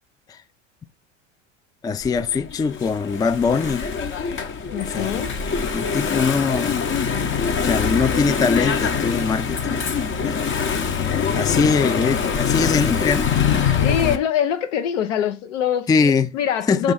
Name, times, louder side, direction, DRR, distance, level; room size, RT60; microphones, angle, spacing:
voice 1, 1.8-3.9 4.9-5.2 5.7-6.9 7.6-9.9 10.2-10.5 11.3-13.3 15.9-16.4 16.7-16.9, left 5 dB, 10° left, 0.4 m, -22 dB
Engine / Mechanisms, 2.0-14.2, left 6 dB, 30° left, 0.9 m, -23 dB
voice 2, 4.7-5.3 12.2-12.3 13.8-15.9 16.3-16.9, left 9 dB, 80° left, 1.1 m, -23 dB
5.2 x 3.9 x 5.7 m
hypercardioid pair, 85°, 36 cm